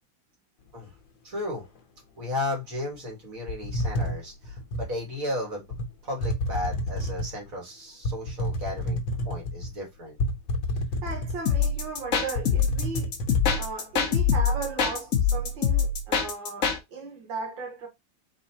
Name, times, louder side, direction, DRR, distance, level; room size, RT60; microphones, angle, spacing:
voice 1, 1.2-1.7 2.2-5.7 6.0-9.0 9.2-10.2, left 1 dB, 45° right, 2.1 m, -34 dB
sound 1, 3.5-4.9 5.7-5.9 6.2-7.4 8.0-9.7 10.2-11.6 12.0-12.1 12.4-13.6, left 1 dB, 70° left, 1.6 m, -29 dB
voice 2, 11.0-13.2 13.5-17.9, right 4 dB, 70° right, 2.2 m, -36 dB
sound 2, 11.5-16.8, left 6 dB, 50° left, 1.1 m, -24 dB
4.2 x 4.2 x 2.8 m
omnidirectional pair, 2.2 m